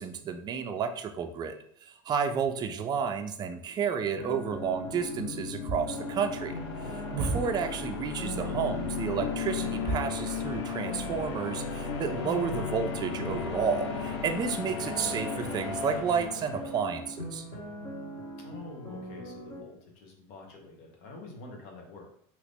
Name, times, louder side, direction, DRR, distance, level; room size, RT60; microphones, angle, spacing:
voice 1, 0.0-6.6 6.9-17.5, right 6 dB, 30° right, 7 dB, 0.4 m, -31 dB
sound 1, 4.0-19.6, equal, 30° left, 1.1 m, -41 dB
sound 2, 4.3-17.2, left 5 dB, 85° left, 0.6 m, -36 dB
voice 2, 18.4-22.1, left 2 dB, 65° left, 2 dB, 1.0 m, -47 dB
2.9 x 2.5 x 3.5 m, 0.65 s
supercardioid pair, 115°, 13 cm